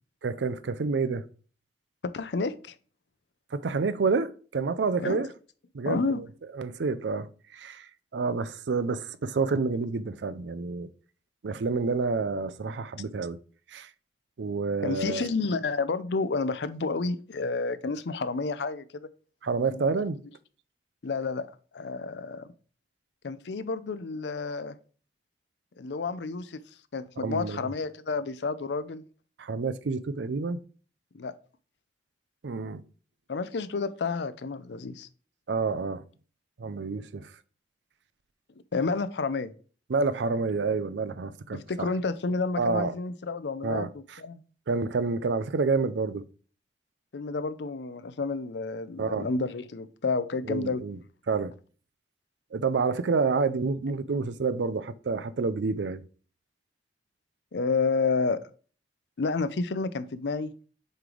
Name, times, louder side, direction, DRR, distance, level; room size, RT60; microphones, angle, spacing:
voice 1, 0.2-1.3 3.5-5.3 5.7-6.3 6.5-10.9 11.4-13.4 13.7-13.9 14.4-15.3 19.4-20.2 27.2-27.7 29.4-30.6 32.4-32.8 35.5-36.0 36.6-37.3 39.9-41.9 42.6-42.9 43.6-44.2 44.7-46.2 49.0-49.3 50.5-51.0 51.3-51.5 52.5-56.0, right 4 dB, 85° right, 0.5 m, -29 dB
voice 2, 2.0-2.7 5.0-5.2 5.9-6.2 14.8-19.1 19.7-19.9 21.0-21.5 21.7-22.5 23.2-24.8 25.8-26.6 26.9-29.0 31.1-31.3 33.3-35.1 38.7-39.5 41.5-43.9 44.2-44.4 47.1-50.8 57.5-58.4 59.2-60.5, left 4 dB, 80° left, 0.5 m, -30 dB
7.8 x 3.3 x 3.8 m
head